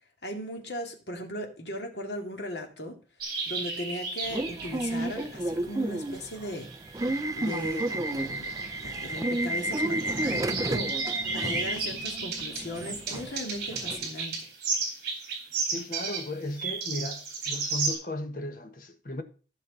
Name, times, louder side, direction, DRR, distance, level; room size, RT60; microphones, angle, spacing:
voice 1, 0.2-3.0 3.5-7.0 7.3-8.5 8.8-14.4, equal, 65° left, 2.3 m, -38 dB
sound 1, 3.2-5.4 6.1-17.9, right 4 dB, 55° right, 4.0 m, -34 dB
Subway metro underground / Alarm, 4.3-14.1, right 1 dB, 20° right, 0.4 m, -31 dB
voice 2, 15.7-19.2, left 1 dB, 45° left, 1.3 m, -35 dB
14.0 x 6.4 x 4.0 m
head